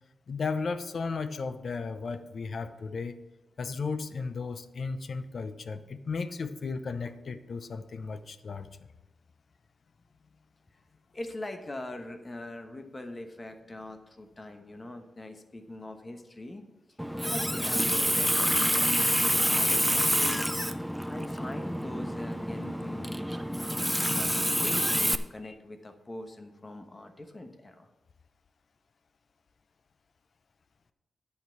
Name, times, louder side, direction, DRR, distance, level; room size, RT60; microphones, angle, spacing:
voice 1, 0.3-3.2 3.6-8.7 25.4-25.5, left 4 dB, 50° left, 11 dB, 0.6 m, -35 dB
voice 2, 11.1-16.6 17.2-20.5 20.8-23.2 24.1-27.9, left 1 dB, 20° left, 6 dB, 1.0 m, -42 dB
Water tap faucet, 17.0-25.2, equal, ahead, 0.4 m, -27 dB
9.8 x 8.5 x 4.5 m, 1.1 s
wide cardioid pair, 155°, 0 cm